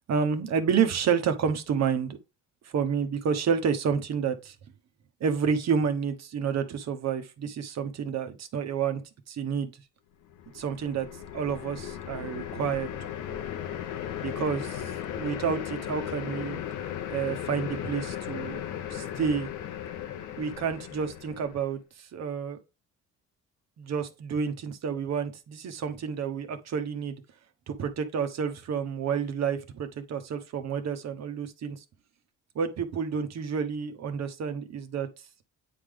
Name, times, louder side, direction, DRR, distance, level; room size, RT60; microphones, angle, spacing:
voice 1, 0.1-2.2 2.6-4.5 5.2-9.0 9.3-9.8 10.5-11.1 11.3-12.9 14.2-16.6 17.1-18.6 18.9-19.5 20.4-22.6 23.8-27.2 27.7-31.8 32.5-35.1, right 6 dB, 60° right, 1.1 m, -29 dB
sound 1, 10.3-21.7, left 10 dB, 90° left, 0.9 m, -36 dB
8.9 x 3.4 x 3.7 m
cardioid pair, 90°, 30 cm